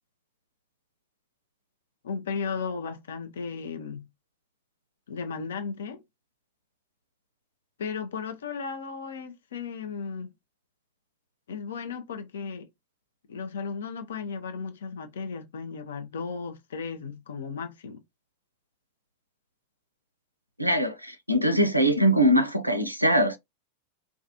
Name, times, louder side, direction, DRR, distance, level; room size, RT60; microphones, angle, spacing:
voice 1, 2.0-4.1 5.1-6.0 7.8-10.3 11.5-12.7 13.3-18.0, left 5 dB, 65° left, 0.5 m, -35 dB
voice 2, 20.6-23.4, equal, 90° right, 0.4 m, -22 dB
2.3 x 2.3 x 2.7 m
figure-of-eight pair, 90°, 0 cm